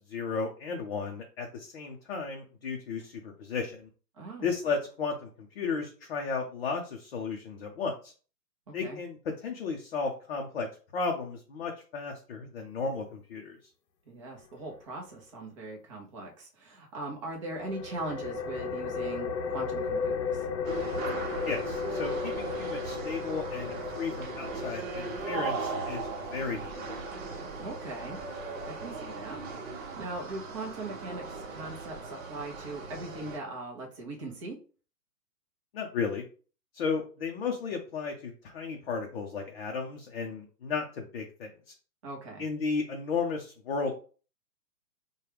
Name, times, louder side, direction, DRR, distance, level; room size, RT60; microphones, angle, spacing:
voice 1, 0.1-3.9 4.4-8.1 8.7-10.7 10.9-13.6 21.5-27.0 35.7-36.2 36.7-41.5 42.4-43.9, left 5 dB, 40° left, 1 dB, 0.6 m, -34 dB
voice 2, 4.2-4.5 8.7-9.0 14.1-20.5 27.5-28.2 28.6-29.4 29.7-34.6 42.0-42.4, right 2 dB, 20° right, 0 dB, 0.6 m, -40 dB
sound 1, 17.5-28.9, left 5 dB, 85° left, 0.8 m, -36 dB
sound 2, 20.6-33.4, right 4 dB, 55° right, 1.0 m, -38 dB
4.5 x 2.3 x 3.3 m, 0.39 s
hypercardioid pair, 140°, 50 cm